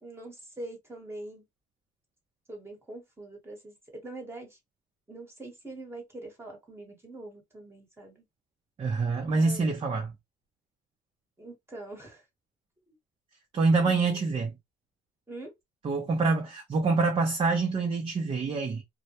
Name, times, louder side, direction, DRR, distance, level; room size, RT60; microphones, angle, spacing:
voice 1, 0.0-1.4 2.5-4.6 5.1-8.2 9.3-9.7 11.4-12.2 12.9-13.0 15.3-15.5, right 2 dB, 15° right, 1.0 m, -44 dB
voice 2, 8.8-10.1 13.5-14.5 15.8-18.8, right 4 dB, 30° right, 0.5 m, -26 dB
2.1 x 2.1 x 2.8 m
cardioid pair, 110°, 17 cm